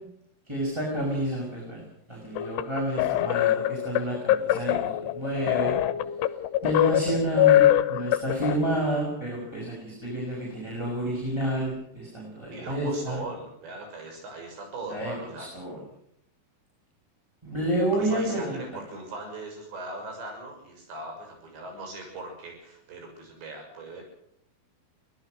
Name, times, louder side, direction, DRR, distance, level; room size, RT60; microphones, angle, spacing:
voice 1, 0.5-1.8 2.1-5.7 6.6-13.2 14.9-15.8 17.4-18.6, right 1 dB, 5° right, -4 dB, 6.1 m, -29 dB
sound 1, 2.4-8.6, left 13 dB, 75° left, 3.0 m, -23 dB
voice 2, 12.5-15.7 17.8-24.0, right 2 dB, 85° right, 3 dB, 8.6 m, -40 dB
24.0 x 18.0 x 6.6 m, 0.72 s
omnidirectional pair, 4.9 m